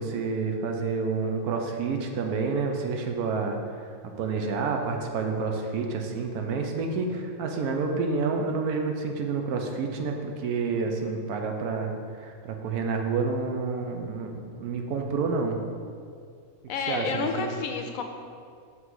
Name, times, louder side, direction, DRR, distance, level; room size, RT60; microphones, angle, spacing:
voice 1, 0.0-3.6 4.0-15.6 16.9-17.5, right 4 dB, 75° right, 3 dB, 1.2 m, -29 dB
voice 2, 16.7-18.0, left 4 dB, 70° left, 4 dB, 0.9 m, -30 dB
6.0 x 3.7 x 6.0 m, 2.3 s
omnidirectional pair, 1.6 m